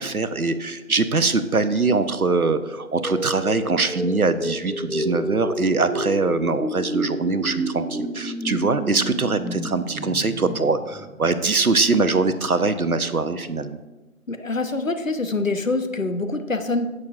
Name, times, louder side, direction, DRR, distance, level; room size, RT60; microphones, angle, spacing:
voice 1, 0.0-13.8, right 3 dB, 90° right, 12 dB, 0.9 m, -22 dB
sound 1, 2.6-11.5, right 1 dB, ahead, 0.4 m, -30 dB
voice 2, 14.3-16.9, left 3 dB, 65° left, 8 dB, 1.0 m, -25 dB
16.5 x 6.4 x 2.5 m, 1.1 s
figure-of-eight pair, 170°, 42 cm